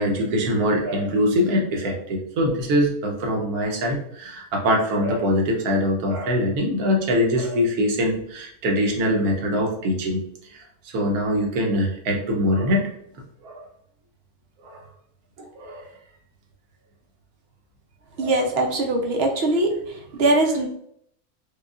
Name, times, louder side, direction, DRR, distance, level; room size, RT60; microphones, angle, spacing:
voice 1, 0.0-10.2 10.9-12.9 13.4-13.6 14.6-14.8 15.4-15.9 18.2-18.4 19.4-19.5, equal, 85° right, 1 dB, 1.3 m, -23 dB
voice 2, 18.2-19.7 20.1-20.7, right 2 dB, 60° right, 1 dB, 0.7 m, -21 dB
4.8 x 2.3 x 2.4 m, 0.69 s
omnidirectional pair, 1.6 m